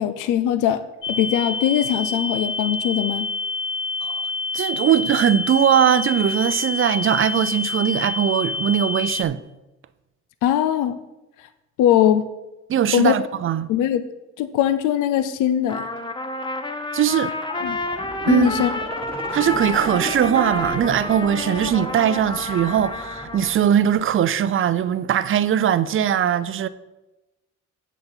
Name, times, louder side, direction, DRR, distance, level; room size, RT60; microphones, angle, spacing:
voice 1, 0.0-3.3 10.4-11.0 11.8-12.3 12.9-13.1 13.7-14.0 14.4-15.9 17.6-17.8 18.3-18.7, left 10 dB, 85° left, 0.5 m, -21 dB
sound 1, 1.0-9.2, left 3 dB, 40° left, 0.6 m, -27 dB
voice 2, 4.5-9.4 12.7-13.7 16.9-17.3 18.3-18.6 19.3-26.7, right 9 dB, 45° right, 0.5 m, -20 dB
Trumpet, 15.7-23.6, left 2 dB, 15° left, 0.9 m, -30 dB
sound 2, 17.5-24.5 24.9-25.0, right 2 dB, 15° right, 1.4 m, -36 dB
8.2 x 6.7 x 4.4 m
cardioid pair, 90°, 30 cm